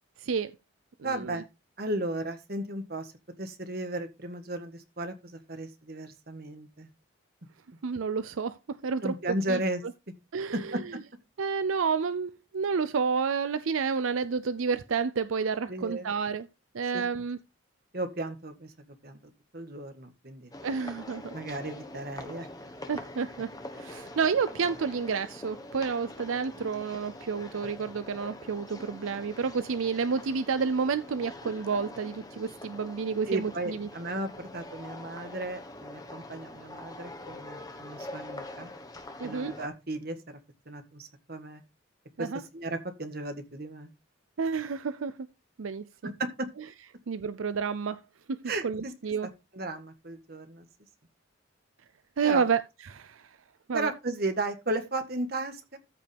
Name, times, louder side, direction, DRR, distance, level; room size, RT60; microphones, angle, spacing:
voice 1, 0.2-0.6 1.1-1.4 7.8-8.6 8.8-9.1 9.5-9.6 10.3-10.8 11.4-16.5 16.7-17.4 20.6-21.3 22.9-33.9 39.2-39.5 42.2-42.4 44.4-45.2 45.6-46.1 47.1-48.0 48.3-49.3 52.2-52.6 52.9-53.3 53.7-53.9, right 5 dB, 80° right, 0.5 m, -30 dB
voice 2, 1.0-1.4 1.8-3.1 3.4-6.9 9.0-9.8 10.5-10.8 15.7-16.1 16.9-17.0 17.9-20.5 21.3-22.5 33.3-38.7 39.2-40.4 40.6-41.6 42.2-43.9 46.0-46.5 48.4-48.9 49.5-50.7 52.2-52.4 53.7-55.8, right 2 dB, 50° right, 1.6 m, -35 dB
sound 1, 20.5-39.7, left 1 dB, 20° left, 1.2 m, -44 dB
14.0 x 5.3 x 3.5 m
head